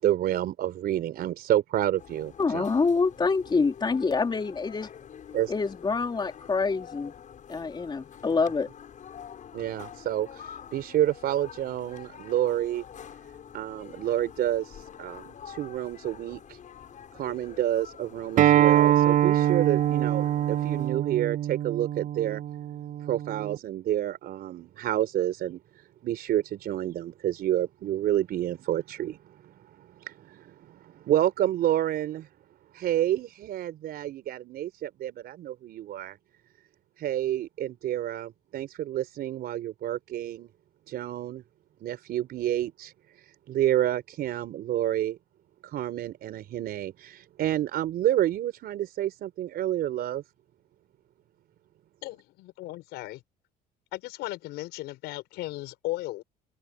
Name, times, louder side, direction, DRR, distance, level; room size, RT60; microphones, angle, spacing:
voice 1, 0.0-2.8 5.3-5.5 9.5-12.8 13.5-16.6 17.1-22.4 23.0-32.3 32.7-36.2 37.0-40.5 40.9-41.4 41.8-45.2 45.6-50.2, right 12 dB, 65° right, 4.6 m, -29 dB
sound 1, 2.0-20.9, left 8 dB, 50° left, 7.1 m, -47 dB
voice 2, 2.4-4.9 5.5-7.1 7.5-8.7, left 4 dB, 25° left, 3.5 m, -26 dB
Acoustic guitar, 18.4-23.6, right 12 dB, 50° right, 0.5 m, -24 dB
voice 3, 52.0-53.2 53.9-56.2, left 17 dB, 90° left, 5.6 m, -36 dB
cardioid pair, 110°, 17 cm